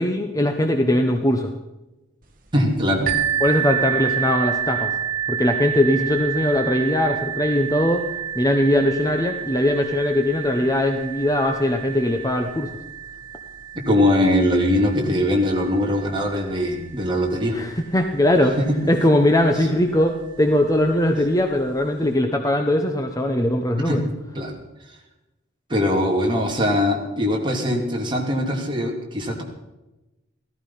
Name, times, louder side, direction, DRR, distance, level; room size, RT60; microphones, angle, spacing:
voice 1, 0.0-1.5 3.4-4.9 5.3-8.0 8.3-12.7 17.5-18.6 18.9-24.0, left 1 dB, 15° left, 4 dB, 0.9 m, -20 dB
voice 2, 2.5-3.1 13.9-17.6 18.6-18.8 23.9-24.0 24.3-24.5 25.7-29.4, left 1 dB, 25° right, 0 dB, 2.8 m, -21 dB
sound 1, 3.1-18.6 19.4-19.5 20.0-20.1, right 9 dB, 40° right, 1.7 m, -29 dB
15.5 x 14.0 x 5.7 m, 1.0 s
head